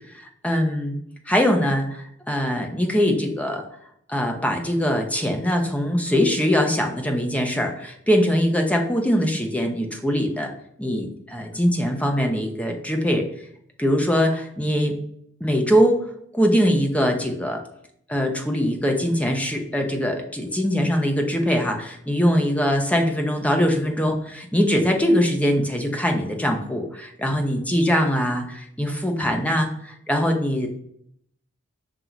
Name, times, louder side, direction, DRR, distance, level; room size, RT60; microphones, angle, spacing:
voice 1, 0.4-1.0 1.3-3.6 4.1-10.5 10.8-13.2 13.8-14.9 15.4-16.0 16.3-17.6 18.1-30.7, equal, 5° left, 3 dB, 0.8 m, -22 dB
5.3 x 4.0 x 4.6 m, 0.70 s
head